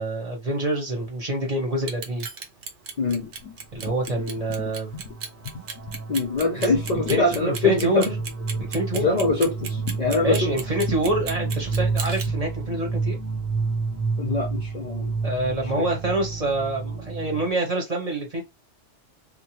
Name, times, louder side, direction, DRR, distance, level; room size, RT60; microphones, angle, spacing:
voice 1, 0.0-2.3 3.7-5.0 6.9-8.0 8.6-9.1 10.2-13.2 15.2-18.4, right 1 dB, 35° right, 0.9 m, -26 dB
Clock, 1.8-12.3, right 5 dB, 80° right, 1.0 m, -35 dB
sound 1, 3.2-5.2 5.4-12.3, left 5 dB, 90° left, 0.9 m, -40 dB
sound 2, 4.2-4.4 4.7-17.5, right 4 dB, 15° right, 0.5 m, -30 dB
voice 2, 6.1-8.2 8.9-10.5 14.2-15.1 15.8-15.9, left 3 dB, 45° left, 0.6 m, -23 dB
2.9 x 2.1 x 2.9 m
omnidirectional pair, 1.2 m